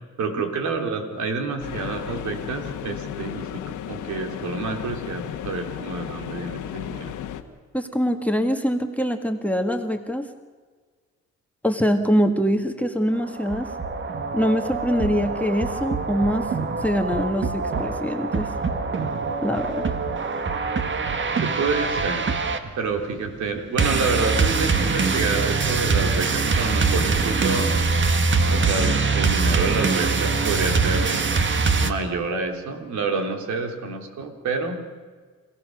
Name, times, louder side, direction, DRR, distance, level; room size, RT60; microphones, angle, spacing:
voice 1, 0.2-7.1 21.4-22.3 22.8-27.7 28.5-31.4 31.8-34.8, right 4 dB, 70° right, 4 dB, 3.4 m, -28 dB
sound 1, 1.6-7.4, left 10 dB, 85° left, 1.5 m, -34 dB
voice 2, 7.7-10.3 11.6-13.7 14.3-16.5 16.8-18.5 19.4-19.9, equal, 5° left, 5 dB, 1.7 m, -24 dB
sound 2, 13.1-31.9, right 4 dB, 40° right, 1.7 m, -23 dB
28.0 x 16.5 x 6.5 m, 1.5 s
cardioid pair, 90°, 30 cm